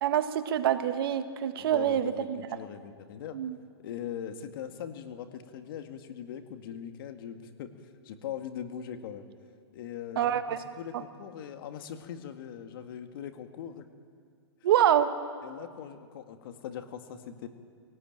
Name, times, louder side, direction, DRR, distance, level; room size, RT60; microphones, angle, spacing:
voice 1, 0.0-2.5 3.3-3.6 10.1-10.6 14.6-15.1, right 10 dB, 60° right, 9 dB, 1.6 m, -26 dB
voice 2, 1.6-3.4 3.8-9.3 9.7-10.4 10.8-13.9 15.4-17.5, left 9 dB, 60° left, 8 dB, 2.0 m, -41 dB
22.5 x 18.0 x 9.1 m, 2.1 s
hypercardioid pair, 135°, 13 cm